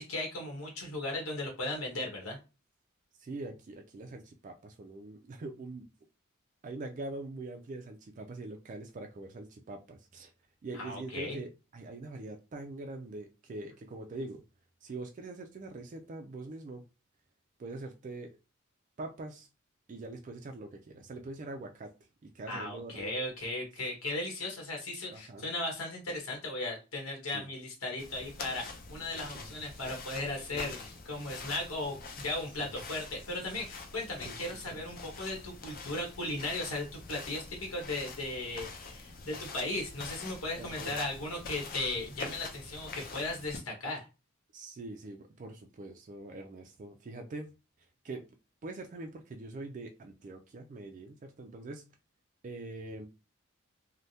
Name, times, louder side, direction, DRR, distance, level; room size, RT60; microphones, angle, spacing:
voice 1, 0.0-2.4 10.8-11.4 22.5-44.1, left 2 dB, 85° left, 0 dB, 1.1 m, -37 dB
voice 2, 3.2-5.9 6.6-10.3 10.6-14.4 14.8-16.8 17.6-18.3 19.0-19.5 19.9-21.9 22.2-23.1 25.1-25.5 27.3-27.5 29.3-29.5 30.5-30.9 32.6-32.8 34.2-34.8 40.5-40.9 44.5-47.5 48.0-48.2 48.6-51.8 52.4-53.1, right 2 dB, 35° right, 4 dB, 0.3 m, -43 dB
sound 1, 28.0-43.6, left 4 dB, 45° left, 0.5 m, -45 dB
3.2 x 2.1 x 2.7 m, 0.29 s
head